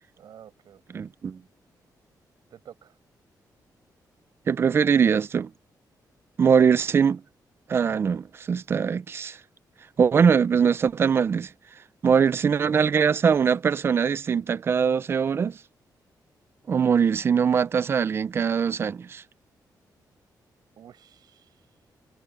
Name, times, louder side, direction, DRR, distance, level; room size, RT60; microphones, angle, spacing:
voice 1, 0.2-1.1 2.5-3.0 6.6-6.8 7.9-8.0 20.8-21.9, right 9 dB, 70° right, 5.9 m, -50 dB
voice 2, 0.9-1.4 4.5-5.5 6.4-7.2 7.7-9.4 10.0-11.5 12.0-15.6 16.7-19.2, right 6 dB, 35° right, 0.4 m, -22 dB
wide cardioid pair, 180°, 7 cm